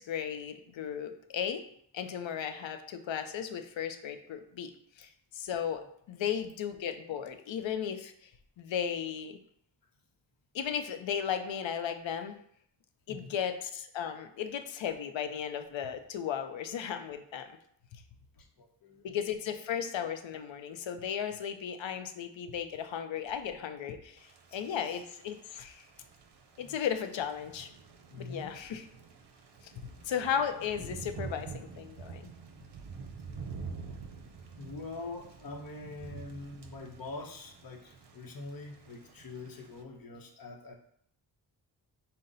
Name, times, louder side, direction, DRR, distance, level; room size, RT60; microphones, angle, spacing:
voice 1, 0.0-1.6 1.9-4.7 5.0-8.1 8.6-9.4 10.5-12.3 13.1-17.5 17.9-18.0 19.0-25.9 26.6-27.7 28.2-28.8 30.0-32.3, left 8 dB, 80° left, 8 dB, 0.6 m, -35 dB
voice 2, 13.1-13.4 18.3-19.2 24.5-25.0 26.6-26.8 28.1-28.7 32.5-32.7 33.3-33.5 34.6-40.8, left 3 dB, 50° left, 2 dB, 0.8 m, -45 dB
Thunder / Rain, 24.2-39.8, right 5 dB, 65° right, 0.7 m, -47 dB
5.5 x 2.1 x 3.8 m, 0.67 s
wide cardioid pair, 75°, 45 cm